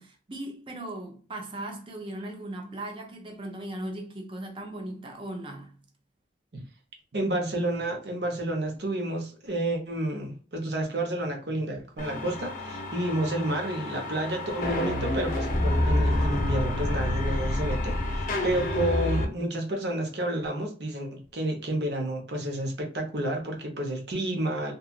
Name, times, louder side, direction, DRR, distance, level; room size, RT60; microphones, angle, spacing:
voice 1, 0.0-5.8, right 1 dB, 30° right, 0.5 m, -38 dB
voice 2, 7.1-24.7, right 1 dB, 65° right, 0.8 m, -30 dB
sound 1, 12.0-19.2, left 1 dB, 45° left, 0.5 m, -28 dB
2.8 x 2.3 x 2.3 m
head